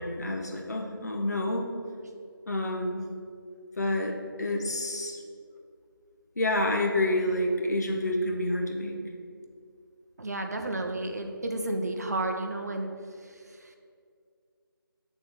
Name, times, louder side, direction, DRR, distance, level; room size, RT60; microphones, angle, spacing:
voice 1, 0.0-1.7 2.5-3.1 3.8-5.2 6.4-9.0, left 1 dB, 45° left, 1 dB, 1.1 m, -28 dB
voice 2, 10.2-12.9 13.2-13.8, right 2 dB, 45° right, 4 dB, 0.7 m, -32 dB
7.0 x 4.2 x 6.7 m, 2.3 s
figure-of-eight pair, 160°, 12 cm